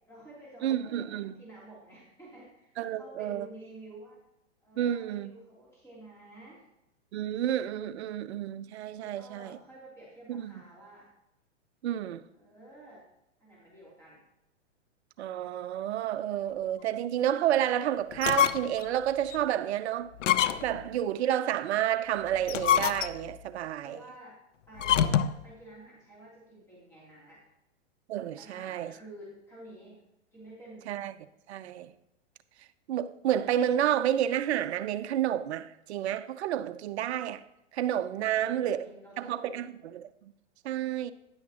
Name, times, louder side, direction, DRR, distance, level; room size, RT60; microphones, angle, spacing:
voice 1, 0.1-4.2 4.6-6.6 9.0-11.1 12.3-13.1 13.4-14.2 23.8-24.4 24.7-27.4 28.4-30.0 30.3-30.9 38.1-39.6, right 1 dB, 10° left, 3.1 m, -50 dB
voice 2, 0.6-1.3 2.8-3.5 4.8-5.3 7.1-9.6 10.3-10.5 11.8-12.2 15.2-20.1 20.6-24.0 28.1-28.9 30.9-31.1 31.5-31.9 32.9-37.4 37.7-38.9 39.2-39.7 39.9-40.1 40.6-41.1, right 11 dB, 65° right, 0.6 m, -30 dB
sound 1, 18.1-18.8 19.3-19.4 20.2-20.9 22.3-23.4 24.8-25.4, left 10 dB, 85° left, 0.6 m, -26 dB
10.5 x 8.7 x 2.9 m
hypercardioid pair, 125°, 36 cm